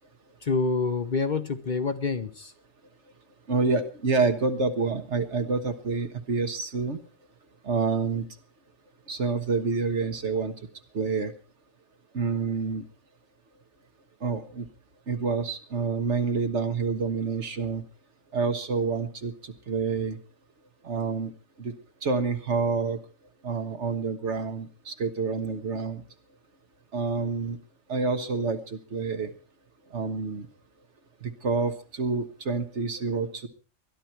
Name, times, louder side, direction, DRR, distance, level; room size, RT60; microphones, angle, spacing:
voice 1, 0.4-2.5, left 4 dB, 45° left, 0.9 m, -27 dB
voice 2, 3.5-7.0 7.6-8.2 9.1-10.5 10.9-11.3 12.1-12.9 14.2-14.6 15.1-17.8 18.3-19.3 19.7-20.2 20.8-21.3 21.6-21.7 22.0-23.0 23.4-26.0 26.9-27.6 27.9-29.3 29.9-30.5 31.2-33.5, right 4 dB, 65° right, 1.7 m, -28 dB
20.5 x 12.0 x 4.5 m
omnidirectional pair, 1.3 m